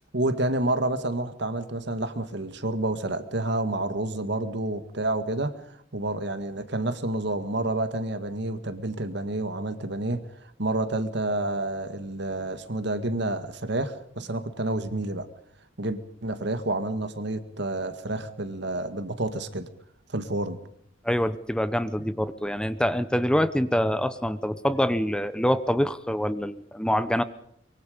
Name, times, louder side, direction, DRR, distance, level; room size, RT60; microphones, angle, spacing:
voice 1, 0.1-5.6 5.9-15.3 15.8-19.7 20.1-20.6, right 2 dB, 65° right, 10 dB, 1.9 m, -29 dB
voice 2, 21.0-27.2, equal, 5° left, 13 dB, 0.9 m, -25 dB
24.5 x 23.0 x 5.2 m, 0.72 s
head